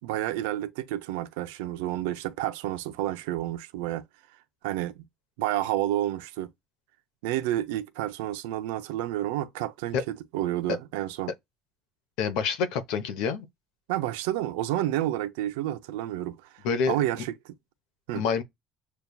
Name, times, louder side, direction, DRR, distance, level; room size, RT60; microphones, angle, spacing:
voice 1, 0.0-4.0 4.6-5.0 5.4-6.5 7.2-11.3 13.9-16.4 16.9-17.3 18.1-18.2, right 14 dB, 90° right, 0.5 m, -30 dB
voice 2, 12.2-13.5 16.6-17.0 18.2-18.4, left 6 dB, 80° left, 0.8 m, -27 dB
6.8 x 2.3 x 2.2 m
supercardioid pair, 105°, 0 cm